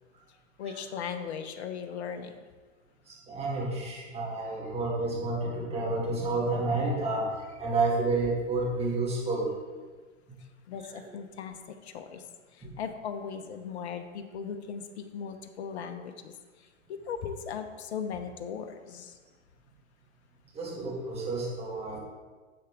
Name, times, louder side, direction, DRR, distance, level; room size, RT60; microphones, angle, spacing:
voice 1, 0.6-2.4 10.7-12.3 12.5-16.3 16.6-19.2, left 7 dB, 55° left, 7 dB, 1.0 m, -38 dB
voice 2, 3.1-9.5 20.5-22.0, right 3 dB, 15° right, -4 dB, 2.4 m, -30 dB
9.6 x 7.1 x 3.7 m, 1.4 s
hypercardioid pair, 115°, 40 cm